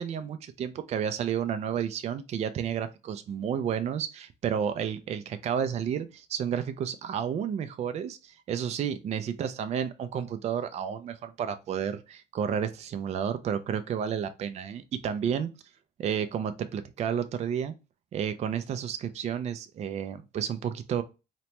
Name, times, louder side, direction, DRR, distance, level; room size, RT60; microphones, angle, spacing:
voice 1, 0.0-15.5 16.0-17.7 18.1-21.0, right 8 dB, 40° right, 0.4 m, -31 dB
3.0 x 2.1 x 2.8 m
cardioid pair, 110°, 17 cm